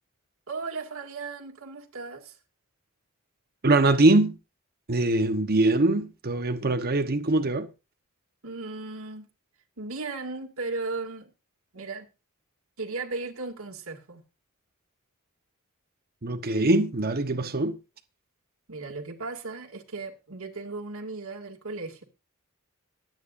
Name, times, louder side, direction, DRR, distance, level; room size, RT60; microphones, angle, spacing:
voice 1, 0.5-2.4 8.4-9.3 9.8-11.3 11.7-12.1 12.8-14.2 18.7-22.0, right 3 dB, 70° right, 2.5 m, -36 dB
voice 2, 3.6-4.4 4.9-7.7 16.2-17.8, right 2 dB, 45° right, 1.2 m, -22 dB
23.0 x 9.4 x 2.6 m
head